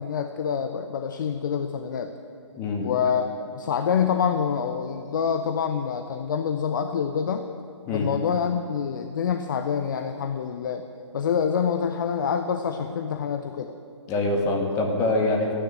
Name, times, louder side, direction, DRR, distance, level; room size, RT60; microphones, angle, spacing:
voice 1, 0.0-2.1 2.8-7.5 7.9-10.8 11.1-13.7, left 7 dB, 40° left, 8 dB, 0.7 m, -26 dB
voice 2, 2.5-2.9 7.9-8.1 14.1-15.5, left 2 dB, 20° left, 1 dB, 1.9 m, -24 dB
13.5 x 10.0 x 8.9 m, 2.6 s
figure-of-eight pair, 135°, 16 cm